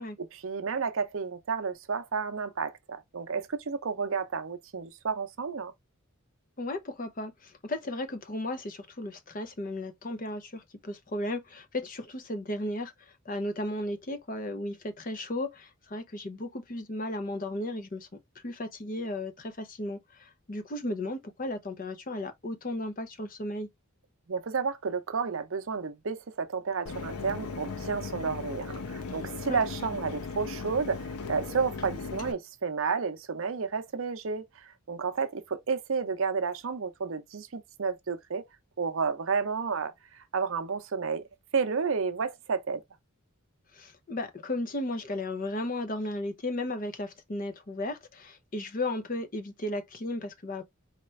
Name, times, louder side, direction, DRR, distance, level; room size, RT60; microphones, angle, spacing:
voice 1, 0.0-5.7 24.3-38.4 38.8-41.3 41.5-42.8, right 5 dB, 65° right, 0.6 m, -31 dB
voice 2, 6.6-23.7 29.5-29.6 43.7-50.6, left 1 dB, 35° left, 0.6 m, -35 dB
Mechanisms, 26.9-32.3, left 4 dB, 90° left, 0.7 m, -37 dB
4.3 x 2.4 x 3.1 m
head